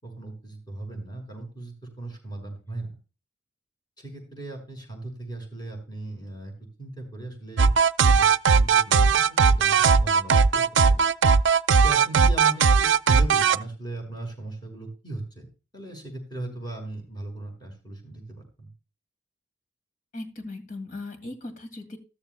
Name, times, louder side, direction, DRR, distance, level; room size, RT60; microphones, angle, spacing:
voice 1, 0.0-2.9 4.0-6.5 6.8-7.7 8.0-11.0 11.8-15.5 15.7-18.7, right 2 dB, 25° left, 2 dB, 5.5 m, -38 dB
sound 1, 7.6-13.6, right 5 dB, 75° right, 0.5 m, -18 dB
voice 2, 20.1-22.0, left 2 dB, 45° left, 6 dB, 2.4 m, -38 dB
14.0 x 13.5 x 2.3 m, 0.32 s
head